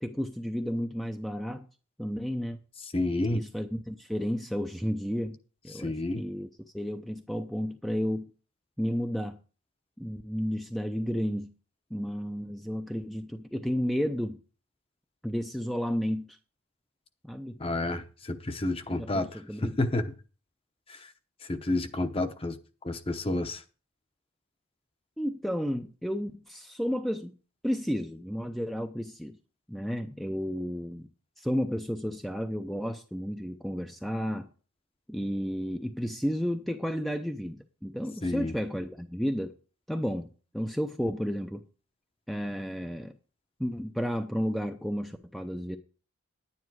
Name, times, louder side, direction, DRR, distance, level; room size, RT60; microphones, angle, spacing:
voice 1, 0.0-1.7 2.0-2.6 3.3-5.4 5.6-6.5 6.7-8.3 8.8-9.4 10.0-11.5 11.9-14.4 15.2-16.4 17.2-17.6 18.9-19.8 25.2-27.3 27.6-29.4 29.7-31.1 31.4-34.5 35.1-39.5 39.9-41.6 42.3-43.1 43.6-45.8, equal, ahead, 0.6 m, -32 dB
voice 2, 2.9-3.4 5.7-6.2 17.6-20.1 20.9-21.1 21.5-22.6 22.8-23.6 38.2-38.5, left 2 dB, 25° left, 0.9 m, -30 dB
10.5 x 9.7 x 4.7 m
head